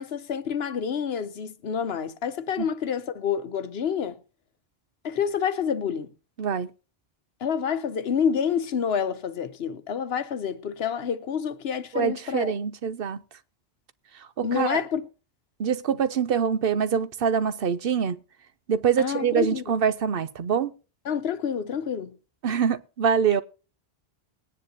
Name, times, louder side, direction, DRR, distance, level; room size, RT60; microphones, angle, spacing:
voice 1, 0.0-4.2 5.0-6.1 7.4-12.5 14.4-15.1 19.0-19.7 21.0-22.2, left 7 dB, 75° left, 1.1 m, -28 dB
voice 2, 6.4-6.7 11.9-13.2 14.1-14.8 15.6-18.2 18.7-20.7 22.4-23.4, right 7 dB, 65° right, 0.9 m, -25 dB
20.5 x 9.9 x 2.8 m
omnidirectional pair, 1.1 m